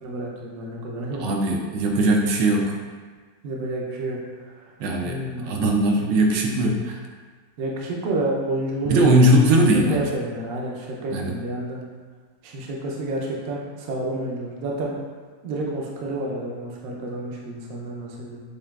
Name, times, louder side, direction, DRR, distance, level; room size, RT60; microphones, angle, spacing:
voice 1, 0.0-1.3 3.4-4.2 4.4-4.7 5.0-5.5 7.6-9.4 9.7-11.8 12.4-14.9 15.4-18.4, right 2 dB, 65° right, -2 dB, 0.9 m, -29 dB
voice 2, 1.2-2.7 4.8-7.0 8.9-10.0 11.1-11.3, right 1 dB, 80° right, 1 dB, 1.2 m, -19 dB
6.6 x 2.3 x 2.3 m, 1.5 s
omnidirectional pair, 1.9 m